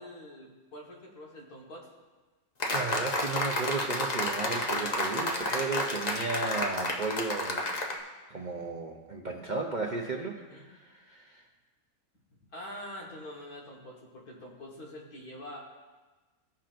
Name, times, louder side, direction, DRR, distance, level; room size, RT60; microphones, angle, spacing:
voice 1, 0.0-1.9 10.4-10.7 12.3-15.6, left 1 dB, 90° left, -3 dB, 2.1 m, -45 dB
sound 1, 2.6-8.0, left 1 dB, 35° left, 0.7 m, -31 dB
voice 2, 2.7-7.7 8.3-11.4, right 3 dB, 45° right, 1 dB, 0.6 m, -34 dB
16.5 x 5.7 x 2.5 m, 1.3 s
omnidirectional pair, 1.5 m